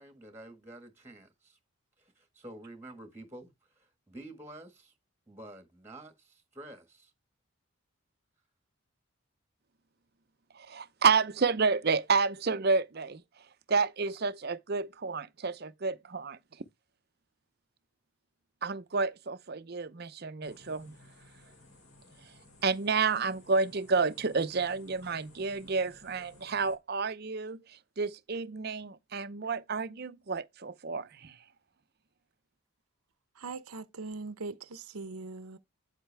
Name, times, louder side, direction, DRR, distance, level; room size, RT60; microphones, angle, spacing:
voice 1, 0.0-1.6 2.0-4.9 5.3-7.1, right 1 dB, 10° right, 1.5 m, -49 dB
voice 2, 10.5-13.2 13.7-16.4 18.6-20.9 22.6-31.4, right 4 dB, 45° right, 0.6 m, -30 dB
sound 1, 20.4-26.8, left 2 dB, 75° left, 3.6 m, -57 dB
voice 3, 33.4-35.6, right 3 dB, 85° right, 0.8 m, -41 dB
9.0 x 8.0 x 3.4 m
head